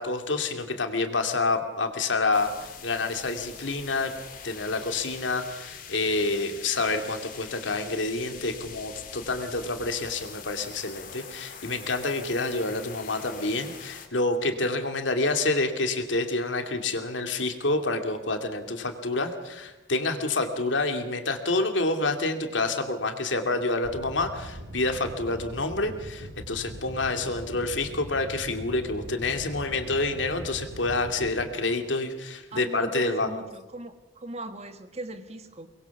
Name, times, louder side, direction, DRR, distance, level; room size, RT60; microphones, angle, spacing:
voice 1, 0.0-4.1 4.4-33.3, left 3 dB, 85° left, 6 dB, 2.6 m, -28 dB
sound 1, 2.3-14.1, left 6 dB, 45° left, 2.8 m, -44 dB
sound 2, 23.8-31.5, equal, 85° right, 2.8 m, -41 dB
voice 2, 32.5-35.7, right 2 dB, 35° right, 9 dB, 1.6 m, -39 dB
23.5 x 21.5 x 7.2 m, 1.1 s
head